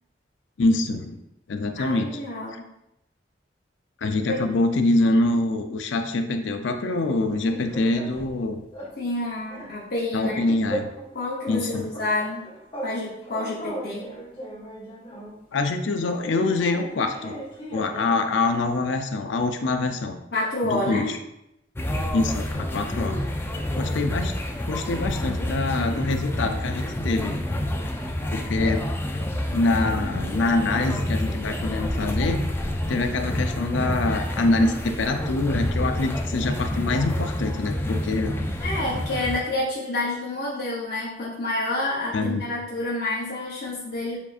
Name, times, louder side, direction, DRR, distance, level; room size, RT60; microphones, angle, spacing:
voice 1, 0.6-1.2 1.5-2.1 4.0-8.6 10.1-10.9 11.5-11.8 15.5-17.3 17.7-20.2 20.6-21.1 22.1-23.2 23.7-24.3 24.7-27.4 28.3-28.8 29.5-32.4 32.9-38.4 42.1-42.4, left 2 dB, 80° left, 6 dB, 0.5 m, -25 dB
voice 2, 1.8-2.7 4.3-4.4 9.0-10.4 11.1-12.5 12.8-14.1 20.3-21.2 25.7-26.0 28.6-28.7 38.6-44.2, left 2 dB, 55° left, -5 dB, 0.8 m, -29 dB
sound 1, 7.0-8.4 8.7-9.0 9.2-11.1 11.4-13.0 13.2-15.4 16.2-18.2, right 1 dB, 30° left, 1.2 m, -37 dB
sound 2, 21.8-39.4, left 1 dB, 10° left, 0.3 m, -28 dB
7.0 x 2.6 x 2.4 m, 0.83 s
head